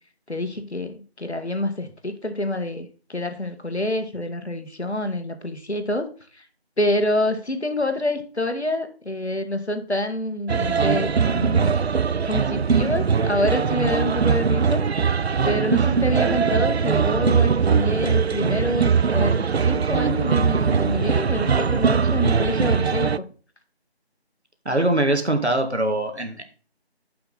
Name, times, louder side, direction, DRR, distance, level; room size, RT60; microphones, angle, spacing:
voice 1, 0.3-6.4 6.8-11.8 12.2-14.8 15.5-23.2, left 1 dB, 85° left, 7 dB, 1.7 m, -27 dB
sound 1, 10.5-23.2, right 6 dB, 70° right, 0.5 m, -21 dB
voice 2, 24.7-26.4, right 1 dB, 90° right, 5 dB, 2.1 m, -22 dB
10.0 x 5.7 x 4.0 m, 0.39 s
figure-of-eight pair, 175°, 32 cm